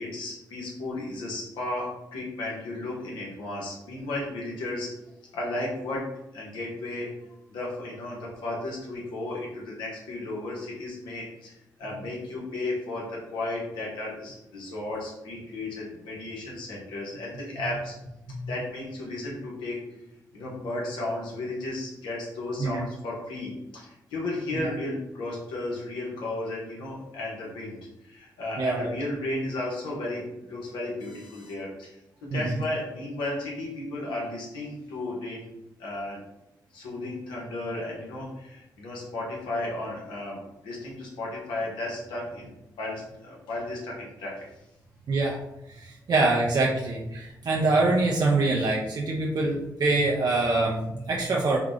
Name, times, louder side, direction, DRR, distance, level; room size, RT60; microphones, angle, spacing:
voice 1, 0.0-4.9 5.3-6.1 6.3-7.1 7.5-17.9 18.5-19.8 20.3-31.9 32.2-35.5 35.8-36.2 36.7-44.5 50.4-50.6, left 2 dB, 90° left, -4 dB, 1.3 m, -34 dB
voice 2, 28.6-28.9 32.3-32.4 45.1-45.4 45.7-51.6, right 2 dB, 60° right, -3 dB, 0.7 m, -25 dB
4.6 x 2.4 x 3.7 m, 0.88 s
supercardioid pair, 55°, 8 cm